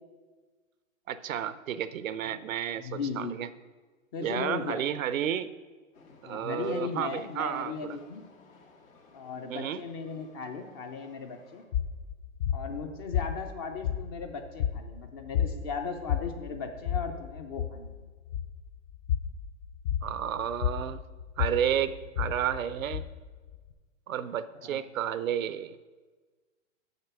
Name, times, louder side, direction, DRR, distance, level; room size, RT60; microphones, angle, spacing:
voice 1, 1.1-3.5 4.2-5.5 6.2-8.0 9.5-9.8 20.0-21.1 21.4-23.0 24.1-25.8, right 9 dB, 85° right, 14 dB, 0.6 m, -31 dB
voice 2, 2.8-3.4 4.1-4.8 6.2-8.2 9.1-11.6 12.5-18.0 24.6-24.8, left 5 dB, 20° left, 6 dB, 0.4 m, -37 dB
Train, 5.9-11.7, left 4 dB, 90° left, 2.1 m, -57 dB
sound 1, 11.7-23.7, left 9 dB, 50° left, 0.7 m, -33 dB
6.7 x 6.6 x 5.9 m, 1.4 s
hypercardioid pair, 125°, 39 cm